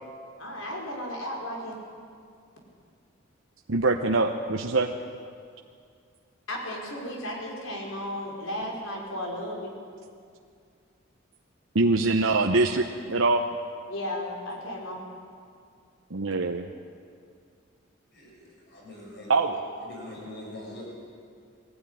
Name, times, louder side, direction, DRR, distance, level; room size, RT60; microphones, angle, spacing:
voice 1, 0.4-1.7 6.5-9.7 13.9-15.0, left 1 dB, 85° left, -1 dB, 5.1 m, -34 dB
voice 2, 3.7-4.9 11.7-13.4 16.1-16.7 19.3-19.5, right 3 dB, 75° right, 3 dB, 1.0 m, -23 dB
voice 3, 18.1-19.4 19.8-20.8, left 1 dB, 55° left, -3 dB, 7.5 m, -43 dB
21.5 x 16.0 x 10.0 m, 2.3 s
head